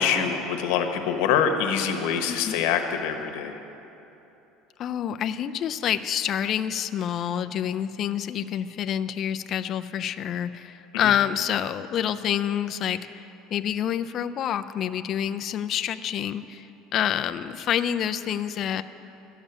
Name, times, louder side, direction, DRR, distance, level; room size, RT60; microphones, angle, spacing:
voice 1, 0.0-3.6 10.9-11.1, left 7 dB, 75° left, 6 dB, 1.2 m, -25 dB
voice 2, 2.3-2.6 4.8-18.8, left 9 dB, 35° left, 9 dB, 0.3 m, -27 dB
12.5 x 7.2 x 9.3 m, 3.0 s
cardioid pair, 170°, 0 cm